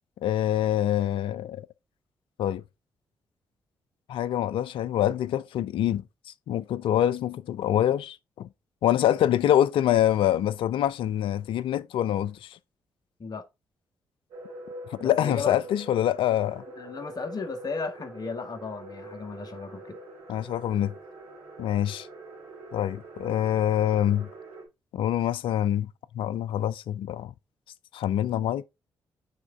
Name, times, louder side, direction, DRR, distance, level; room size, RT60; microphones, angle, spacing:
voice 1, 0.2-1.7 2.4-2.6 4.1-6.0 6.5-8.5 8.8-12.6 14.9-16.6 20.3-20.9 21.6-22.1 22.7-24.3 24.9-27.3 27.9-28.7, left 11 dB, 70° left, 0.5 m, -25 dB
sound 1, 14.3-24.7, right 1 dB, 80° right, 2.8 m, -44 dB
voice 2, 15.0-15.6 16.8-20.0, left 4 dB, 45° left, 1.7 m, -35 dB
9.2 x 3.6 x 3.8 m
hypercardioid pair, 40°, 9 cm